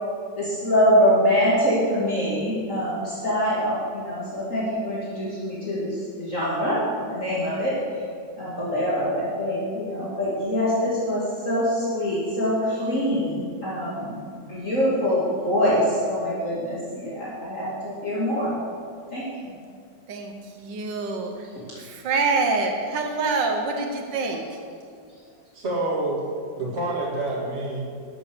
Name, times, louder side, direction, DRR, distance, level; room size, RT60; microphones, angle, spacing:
voice 1, 0.4-6.8 7.1-7.8 8.4-14.2 14.5-18.5 19.1-19.2, equal, 45° left, -8 dB, 2.7 m, -24 dB
voice 2, 20.1-21.5 21.8-24.4, right 3 dB, 85° right, 3 dB, 1.7 m, -26 dB
voice 3, 25.5-26.2 26.6-27.8, right 2 dB, 35° right, -4 dB, 2.5 m, -27 dB
12.5 x 8.3 x 6.7 m, 2.2 s
omnidirectional pair, 1.9 m